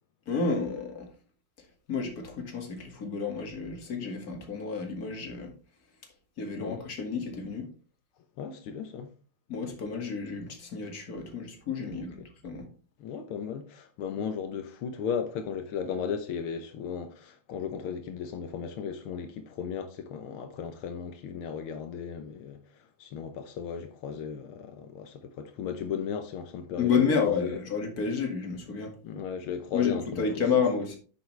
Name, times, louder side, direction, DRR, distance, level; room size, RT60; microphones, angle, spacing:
voice 1, 0.3-1.1 1.9-5.5 6.4-7.7 9.5-12.2 12.4-12.7 26.8-28.9 29.7-31.0, left 5 dB, 45° left, 2.4 m, -30 dB
voice 2, 8.4-9.1 11.9-12.3 13.0-27.6 29.0-30.3, left 7 dB, 85° left, 1.8 m, -36 dB
10.0 x 7.2 x 3.3 m
omnidirectional pair, 2.3 m